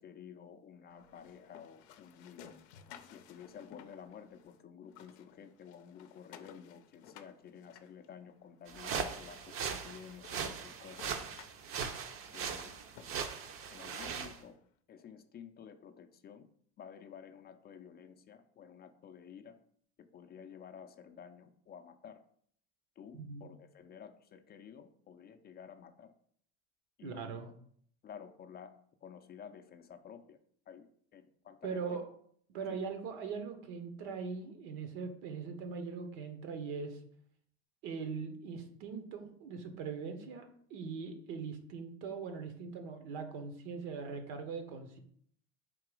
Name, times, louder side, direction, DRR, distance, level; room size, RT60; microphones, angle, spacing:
voice 1, 0.0-2.5 3.1-11.1 12.3-12.7 13.7-14.6 14.9-16.5 16.8-19.6 20.0-22.2 23.0-26.1 27.0-27.3 28.0-28.7 29.0-30.4 30.7-32.1 32.7-32.8, left 7 dB, 30° left, 8 dB, 0.4 m, -52 dB
sound 1, 0.9-4.6 4.9-8.6 9.3-9.4 9.8-9.9 10.2-14.5, left 9 dB, 85° left, 0.5 m, -57 dB
sound 2, 8.7-14.4, right 6 dB, 45° right, 0.6 m, -39 dB
voice 2, 27.0-27.5 31.6-32.0 32.5-37.0 37.8-45.0, right 5 dB, 70° right, 7 dB, 1.0 m, -41 dB
3.8 x 2.9 x 4.8 m, 0.63 s
supercardioid pair, 105°, 33 cm